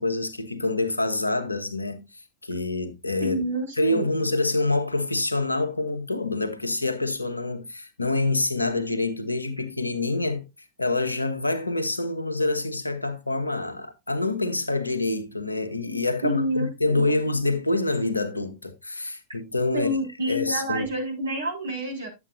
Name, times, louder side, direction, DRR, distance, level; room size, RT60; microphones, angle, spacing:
voice 1, 0.0-3.4 3.8-10.4 10.8-19.9 20.3-20.9, left 2 dB, 80° left, 1.1 m, -26 dB
voice 2, 3.2-4.1 16.2-17.1 19.7-22.1, equal, 75° right, 4.0 m, -28 dB
11.0 x 7.9 x 2.6 m
figure-of-eight pair, 90°, 0 cm